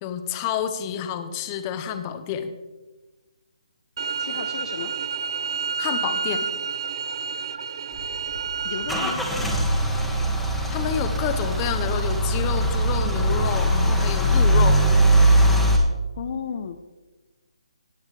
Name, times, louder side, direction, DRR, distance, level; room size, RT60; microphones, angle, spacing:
voice 1, 0.0-2.5 5.8-6.5 10.7-14.9, left 8 dB, 20° left, 9 dB, 0.9 m, -29 dB
sound 1, 4.0-9.1, right 6 dB, 50° right, 0.6 m, -29 dB
voice 2, 4.2-4.9 8.6-9.2 16.2-16.8, left 6 dB, 40° left, 7 dB, 0.7 m, -33 dB
Car / Engine starting / Idling, 7.9-15.8, right 1 dB, ahead, 1.3 m, -21 dB
16.0 x 9.0 x 3.4 m, 1.2 s
hypercardioid pair, 155°, 3 cm